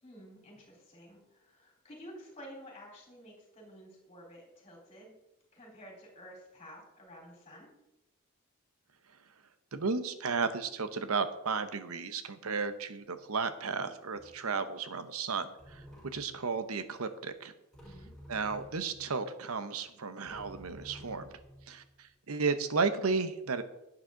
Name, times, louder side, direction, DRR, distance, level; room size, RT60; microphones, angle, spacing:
voice 1, 0.0-5.1 5.5-7.7 17.8-18.1, equal, 25° left, -1 dB, 3.9 m, -51 dB
voice 2, 9.7-15.8 16.1-17.5 18.3-21.3 21.7-23.6, right 4 dB, 80° right, 10 dB, 0.9 m, -33 dB
sound 1, 13.0-13.2 14.1-14.5 15.3-15.4 15.6-16.5 17.7-19.2 19.8-19.9 20.2-22.1, equal, ahead, 4.2 m, -52 dB
11.0 x 8.9 x 3.9 m, 0.87 s
head